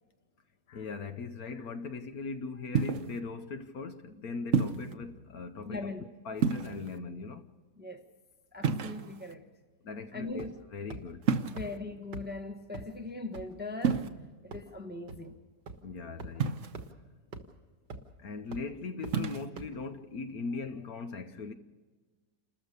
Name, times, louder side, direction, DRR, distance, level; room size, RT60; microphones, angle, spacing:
voice 1, 0.7-5.9 6.2-7.5 9.8-11.2 15.8-16.5 18.2-21.5, left 4 dB, 60° left, 1.4 m, -39 dB
sound 1, 2.7-3.2 4.5-4.9 6.4-7.0 8.6-9.3 11.2-11.8 13.8-14.1 16.4-16.9 19.0-19.5, right 6 dB, 50° right, 1.1 m, -29 dB
voice 2, 5.6-6.0 7.8-8.0 8.5-9.4 10.1-10.5 11.5-15.4, left 2 dB, 5° right, 1.0 m, -40 dB
sound 2, 10.4-10.6 10.9-11.0 11.6-11.7 12.1-12.2 12.7-12.8 13.3-13.4 13.9-14.1 14.5-14.6 15.1-15.2 15.7-15.8 16.2-16.3 16.7-16.9 17.3-17.4 17.9-18.1 18.5-18.6 19.0-19.1 19.6-19.7, right 4 dB, 85° right, 2.2 m, -41 dB
29.0 x 13.5 x 6.7 m
omnidirectional pair, 1.8 m